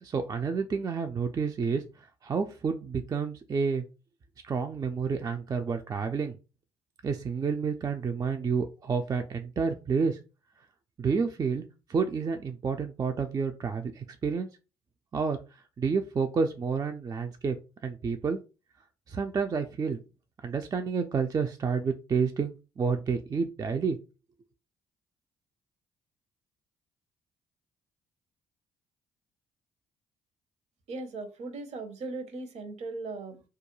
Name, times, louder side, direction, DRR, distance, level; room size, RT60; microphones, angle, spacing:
voice 1, 0.0-3.8 4.4-6.3 7.0-10.2 11.0-11.6 11.9-14.5 15.1-15.4 15.8-17.6 17.8-18.4 19.1-20.0 20.4-24.0, right 5 dB, 30° right, 0.4 m, -29 dB
voice 2, 30.9-33.4, right 3 dB, 55° right, 0.7 m, -38 dB
2.3 x 2.2 x 2.9 m
hypercardioid pair, 50°, 13 cm